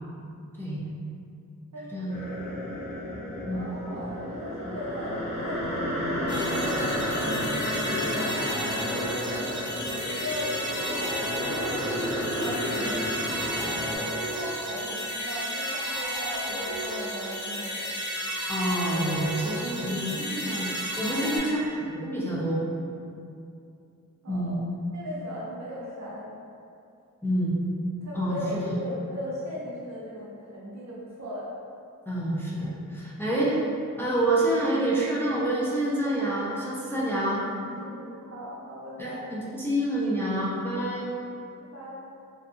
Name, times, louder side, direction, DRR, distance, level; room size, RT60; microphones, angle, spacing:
sound 1, 2.1-14.0, left 1 dB, 20° right, 0.8 m, -32 dB
voice 1, 3.5-9.6 9.9-13.1 13.9-17.8 24.2-24.6 24.9-26.3 28.0-31.5 37.1-39.3 41.6-42.0, equal, 50° right, -5 dB, 0.6 m, -38 dB
sound 2, 6.3-21.4, equal, 55° left, 1.1 m, -32 dB
voice 2, 18.5-22.6 24.3-24.6 27.2-27.5 28.1-28.7 32.1-33.6 34.0-37.4 39.0-41.1, right 1 dB, 5° left, -7 dB, 0.5 m, -28 dB
2.6 x 2.3 x 2.5 m, 2.5 s
cardioid pair, 60°, 34 cm